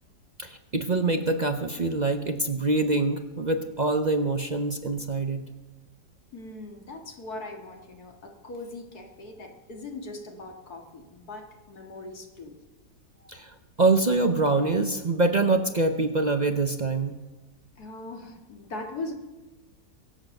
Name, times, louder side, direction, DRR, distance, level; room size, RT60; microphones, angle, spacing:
voice 1, 0.4-5.4 13.3-17.2, right 3 dB, 45° right, 7 dB, 0.5 m, -25 dB
voice 2, 6.3-12.6 17.8-19.1, left 2 dB, 65° left, 3 dB, 2.5 m, -40 dB
23.0 x 8.2 x 6.6 m, 1.2 s
omnidirectional pair, 1.8 m